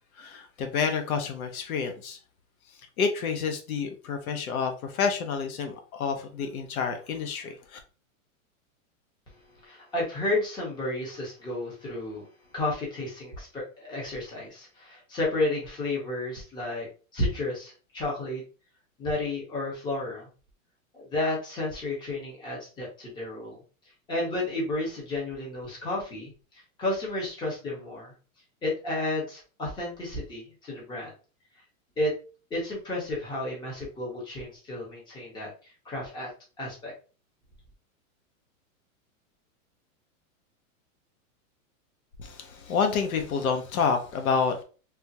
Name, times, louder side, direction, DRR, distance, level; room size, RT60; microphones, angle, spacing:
voice 1, 0.2-2.2 3.0-7.8 42.2-44.6, left 5 dB, 85° left, 6 dB, 0.9 m, -29 dB
voice 2, 9.6-12.2 12.5-16.9 17.1-18.4 19.0-20.3 20.9-23.6 24.1-28.1 28.6-31.1 32.0-32.1 32.5-35.5 35.8-36.3 36.6-36.9, left 2 dB, 10° left, -4 dB, 0.8 m, -32 dB
3.5 x 2.4 x 2.7 m, 0.36 s
supercardioid pair, 160°, 42 cm